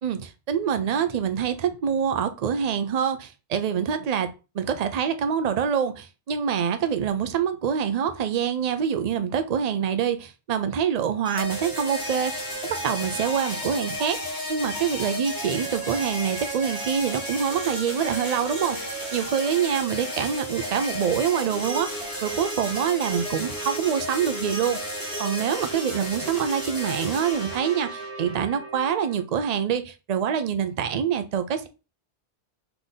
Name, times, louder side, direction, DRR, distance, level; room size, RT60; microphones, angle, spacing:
voice 1, 0.0-4.3 4.5-24.8 25.2-31.7, right 7 dB, 45° right, 0.5 m, -26 dB
sound 1, 11.2-29.2, equal, 20° left, 1.5 m, -33 dB
3.9 x 3.4 x 4.0 m
omnidirectional pair, 1.2 m